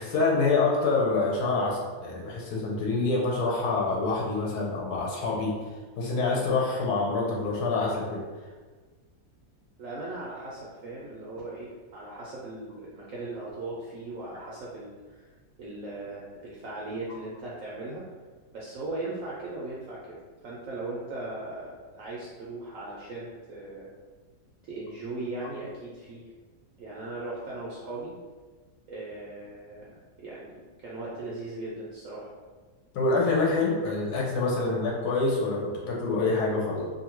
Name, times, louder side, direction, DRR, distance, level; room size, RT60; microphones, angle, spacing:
voice 1, 0.0-5.6 6.0-8.2 32.9-36.9, left 3 dB, 85° left, -3 dB, 1.2 m, -26 dB
voice 2, 9.8-15.3 15.6-18.0 18.5-23.9 24.6-26.3 26.8-28.1 28.9-32.3, right 2 dB, 65° right, -6 dB, 0.9 m, -38 dB
2.7 x 2.5 x 2.9 m, 1.4 s
omnidirectional pair, 1.7 m